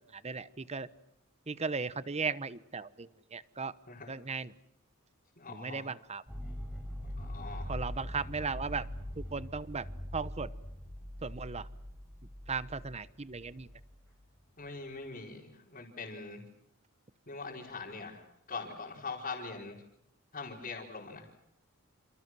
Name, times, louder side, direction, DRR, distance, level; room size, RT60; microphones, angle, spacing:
voice 1, 0.1-0.9 1.5-3.7 4.1-4.5 5.5-6.2 7.7-8.8 9.2-9.9 10.1-10.5 11.2-11.7 12.5-13.7, right 4 dB, 30° right, 16 dB, 0.9 m, -37 dB
voice 2, 5.4-5.9 7.2-7.7 14.6-16.4 17.3-19.8 20.3-21.3, left 4 dB, 40° left, -5 dB, 4.7 m, -42 dB
sound 1, 6.3-14.4, equal, 5° right, 6.0 m, -42 dB
28.5 x 28.5 x 6.2 m, 0.77 s
head